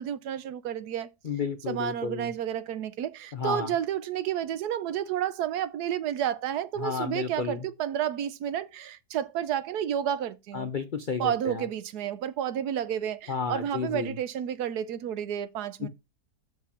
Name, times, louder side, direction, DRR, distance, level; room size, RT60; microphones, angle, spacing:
voice 1, 0.0-1.1 1.7-10.7 11.2-15.9, right 10 dB, 70° right, 1.2 m, -31 dB
voice 2, 1.2-2.3 3.3-3.7 6.8-7.7 10.5-11.7 13.3-14.2 15.8-15.9, left 5 dB, 65° left, 0.5 m, -32 dB
7.1 x 4.7 x 5.9 m
omnidirectional pair, 1.8 m